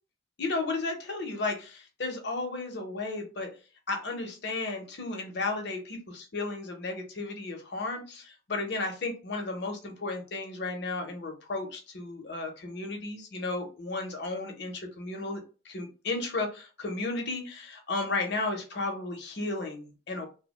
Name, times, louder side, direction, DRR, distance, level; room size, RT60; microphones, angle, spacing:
voice 1, 0.4-3.5 3.9-20.3, left 3 dB, 55° left, 3 dB, 0.7 m, -34 dB
2.8 x 2.0 x 2.9 m, 0.34 s
head